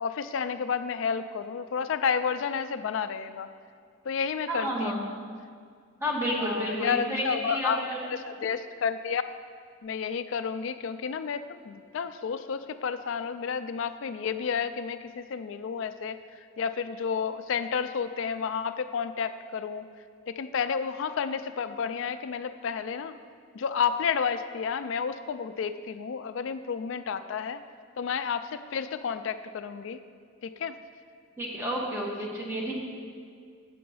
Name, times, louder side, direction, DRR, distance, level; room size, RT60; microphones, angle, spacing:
voice 1, 0.0-3.5 4.1-5.2 6.4-7.8 8.3-9.3 9.8-16.2 16.6-19.9 20.3-23.1 23.5-27.6 28.0-30.0 30.4-30.8, left 6 dB, 65° left, 11 dB, 0.3 m, -31 dB
voice 2, 4.5-5.0 6.0-8.1 31.4-32.7, equal, 10° right, -3 dB, 1.1 m, -30 dB
7.6 x 5.6 x 5.5 m, 2.1 s
head